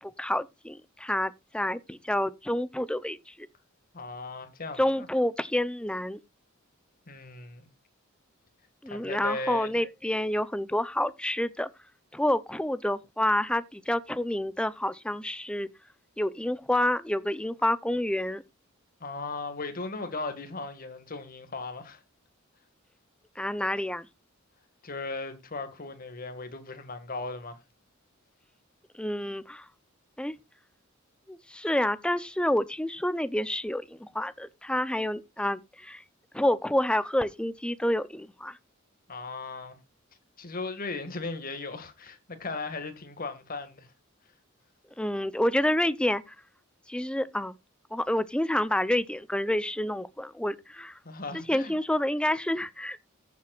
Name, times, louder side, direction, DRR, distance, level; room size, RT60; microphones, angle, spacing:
voice 1, 0.0-3.5 4.8-6.2 8.8-11.7 12.1-15.7 16.2-18.4 23.4-24.1 29.0-29.7 30.2-30.3 31.3-36.0 36.3-38.6 45.0-46.3 46.9-47.5 47.9-51.0 51.3-53.0, left 1 dB, 5° left, 0.6 m, -28 dB
voice 2, 3.9-5.1 7.1-7.7 8.9-9.7 19.0-22.0 24.8-27.6 39.1-39.8 40.4-43.9 51.0-51.7, left 3 dB, 45° left, 1.9 m, -37 dB
14.5 x 7.5 x 2.4 m
head